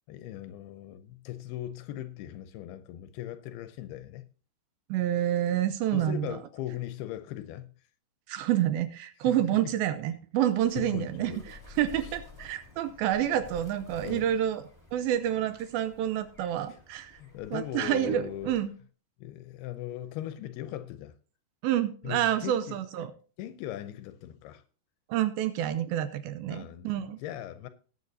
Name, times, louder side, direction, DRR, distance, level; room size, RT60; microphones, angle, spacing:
voice 1, 0.1-4.3 5.9-7.7 10.8-11.4 12.0-12.1 14.0-14.3 16.7-16.8 17.1-18.6 19.2-21.1 22.0-22.8 23.4-24.6 26.5-27.7, left 13 dB, 80° left, 2.3 m, -39 dB
voice 2, 4.9-6.4 8.3-14.6 14.9-17.2 17.5-18.7 21.6-23.1 25.1-27.2, right 11 dB, 85° right, 2.1 m, -28 dB
Bird, 10.5-18.8, left 3 dB, 15° right, 0.8 m, -52 dB
19.0 x 8.2 x 2.7 m
omnidirectional pair, 5.0 m